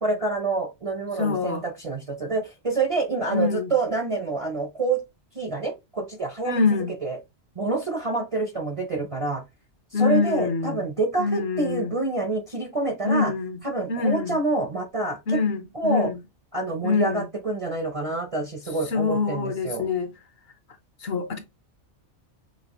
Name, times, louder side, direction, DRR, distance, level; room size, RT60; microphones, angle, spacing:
voice 1, 0.0-5.0 5.3-7.2 7.6-9.4 9.9-13.3 13.6-15.4 15.7-16.1 16.5-19.9, right 3 dB, 40° right, 0.5 m, -27 dB
voice 2, 1.2-1.6 3.3-3.7 6.4-6.9 9.9-10.8 11.2-11.9 13.0-13.6 13.9-14.4 15.3-16.2 16.8-17.2 18.9-20.1 21.0-21.4, left 5 dB, 60° left, 1.0 m, -25 dB
5.8 x 2.3 x 2.9 m
omnidirectional pair, 1.2 m